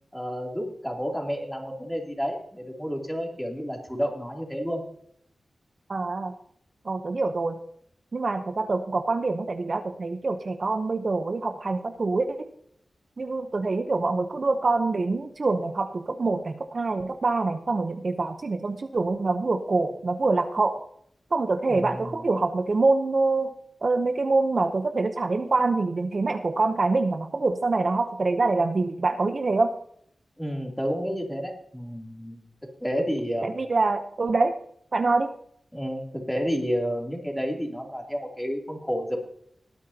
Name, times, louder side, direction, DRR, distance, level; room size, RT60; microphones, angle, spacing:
voice 1, 0.1-4.8 21.7-22.2 30.4-32.4 32.8-33.5 35.7-39.2, equal, 5° left, 0 dB, 3.0 m, -30 dB
voice 2, 5.9-6.3 6.8-7.6 8.1-12.3 13.2-20.8 21.3-23.5 23.8-29.7 33.4-34.5 34.9-35.3, right 3 dB, 55° right, 7 dB, 0.8 m, -25 dB
19.0 x 9.2 x 2.9 m, 0.67 s
wide cardioid pair, 70°, 0 cm